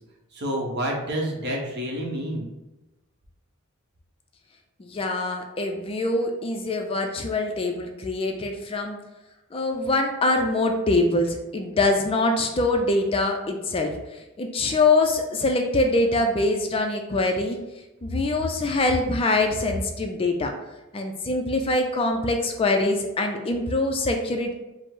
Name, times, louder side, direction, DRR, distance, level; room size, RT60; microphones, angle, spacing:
voice 1, 0.3-2.5, equal, 50° right, -1 dB, 0.9 m, -28 dB
voice 2, 4.8-9.0 9.5-14.0 14.4-17.6 18.0-20.5 20.9-24.5, left 2 dB, 25° left, 4 dB, 0.3 m, -24 dB
5.0 x 2.0 x 3.7 m, 1.0 s
head